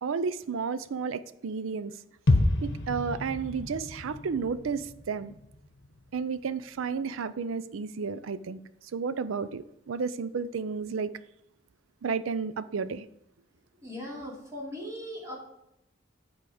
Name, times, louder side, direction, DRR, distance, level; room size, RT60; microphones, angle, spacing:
voice 1, 0.0-1.9 2.6-5.3 6.1-8.6 8.9-11.1 12.0-13.1, right 5 dB, 85° right, 14 dB, 0.5 m, -32 dB
sound 1, 2.3-6.2 6.5-6.6, left 2 dB, 60° left, 1.0 m, -29 dB
voice 2, 13.8-15.4, left 1 dB, 15° right, -4 dB, 2.7 m, -39 dB
9.2 x 4.7 x 4.9 m, 0.82 s
head